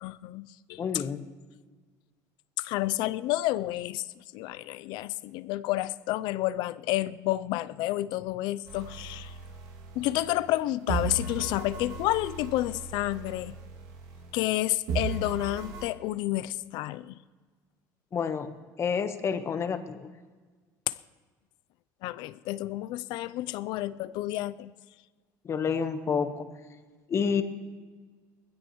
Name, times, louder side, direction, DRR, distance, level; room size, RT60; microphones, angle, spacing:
voice 1, 0.0-1.0 2.6-9.3 10.0-13.6 14.3-17.1 20.9-21.0 22.0-24.7, left 16 dB, 75° left, 16 dB, 0.5 m, -30 dB
voice 2, 0.8-1.2 18.1-18.5 18.8-20.1 25.4-26.5 27.1-27.4, left 6 dB, 35° left, 9 dB, 1.1 m, -29 dB
sound 1, 8.7-10.5 10.9-14.6 14.9-15.9, right 5 dB, 75° right, 2.3 m, -37 dB
21.0 x 16.0 x 3.1 m, 1.4 s
cardioid pair, 120°, 8 cm